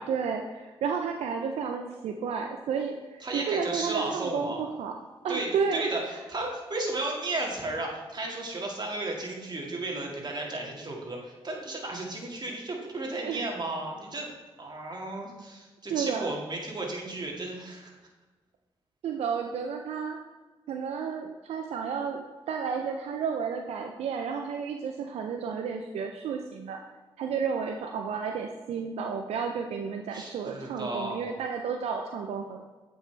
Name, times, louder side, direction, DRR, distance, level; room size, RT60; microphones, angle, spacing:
voice 1, 0.0-4.9 5.2-5.8 13.2-13.5 15.9-16.3 19.0-20.2 20.7-26.8 27.2-32.6, right 6 dB, 85° right, 3 dB, 0.5 m, -32 dB
voice 2, 3.2-4.6 5.3-14.3 14.6-18.0 30.1-31.3, right 2 dB, 45° right, 0 dB, 1.9 m, -34 dB
8.0 x 5.2 x 3.3 m, 1.3 s
supercardioid pair, 50°, 10 cm